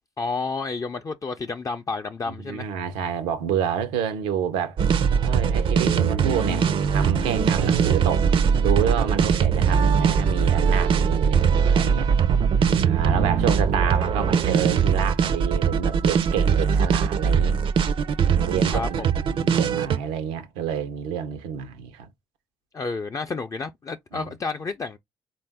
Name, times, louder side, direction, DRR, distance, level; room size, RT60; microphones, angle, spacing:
voice 1, 0.2-2.7 13.0-13.7 18.7-19.1 22.7-25.0, left 4 dB, 30° left, 0.5 m, -31 dB
voice 2, 2.3-4.8 5.2-6.7 6.9-8.3 8.6-12.1 12.8-17.6 18.3-22.1 24.1-24.3, right 8 dB, 90° right, 0.7 m, -28 dB
sound 1, 4.8-20.0, right 6 dB, 55° right, 0.5 m, -21 dB
3.7 x 2.5 x 3.4 m
supercardioid pair, 70°, 11 cm